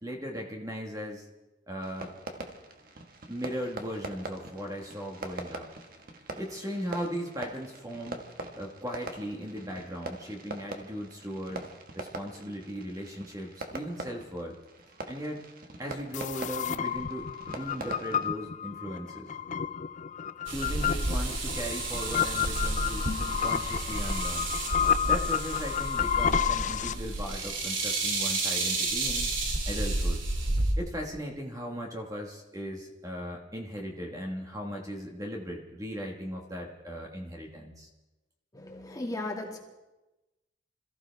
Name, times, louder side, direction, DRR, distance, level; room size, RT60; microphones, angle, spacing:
voice 1, 0.0-1.3 1.7-2.1 3.3-5.7 6.4-8.2 8.5-11.7 11.9-14.6 15.1-15.4 15.8-19.3 20.5-23.1 23.4-24.5 25.0-29.3 29.7-30.2 30.8-37.9, equal, 20° right, 0 dB, 1.6 m, -37 dB
Fireworks, 1.8-18.3, right 2 dB, 50° right, 1.6 m, -43 dB
sound 1, 16.1-26.9, left 8 dB, 40° left, 0.4 m, -31 dB
sound 2, 20.5-30.7, right 2 dB, 80° right, 2.9 m, -31 dB
voice 2, 38.5-39.6, left 2 dB, 20° left, 0 dB, 2.1 m, -36 dB
27.0 x 15.0 x 3.5 m, 1.1 s
head